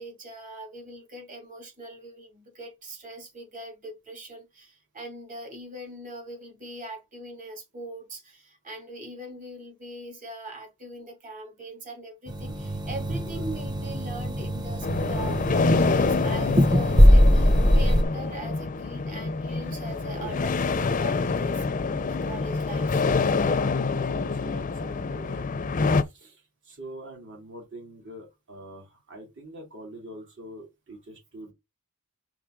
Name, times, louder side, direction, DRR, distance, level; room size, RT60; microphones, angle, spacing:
voice 1, 0.0-21.6 22.0-23.0, right 1 dB, 40° right, 3.2 m, -41 dB
sound 1, 12.3-18.0, equal, 20° right, 0.8 m, -21 dB
sound 2, 14.8-26.0, left 4 dB, 35° left, 0.5 m, -26 dB
voice 2, 23.8-25.5 25.9-31.5, right 1 dB, 60° right, 2.8 m, -44 dB
5.7 x 3.9 x 5.1 m
head